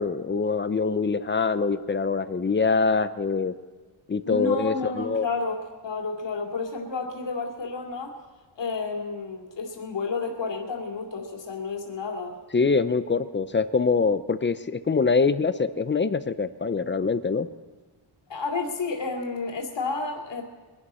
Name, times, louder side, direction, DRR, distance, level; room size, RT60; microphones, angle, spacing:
voice 1, 0.0-3.5 4.1-5.3 12.5-17.5, left 4 dB, 25° left, 12 dB, 0.5 m, -24 dB
voice 2, 4.2-8.1 8.6-12.4 18.3-20.4, left 4 dB, 60° left, 0 dB, 2.4 m, -31 dB
23.0 x 11.0 x 4.3 m, 1.3 s
wide cardioid pair, 135°, 50 cm